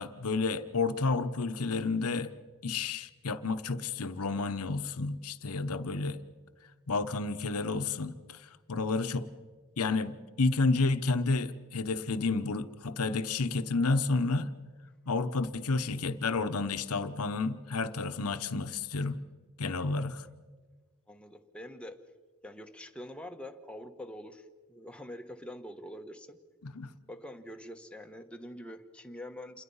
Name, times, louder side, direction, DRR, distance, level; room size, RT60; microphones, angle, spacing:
voice 1, 0.0-2.3 2.6-6.2 6.9-8.4 8.7-9.3 9.8-14.5 15.1-19.2 19.6-20.3 26.6-26.9, left 3 dB, 80° left, 1.0 m, -30 dB
voice 2, 21.1-22.0 22.4-26.4 27.1-29.6, left 1 dB, 5° left, 1.2 m, -45 dB
28.5 x 22.0 x 5.6 m
head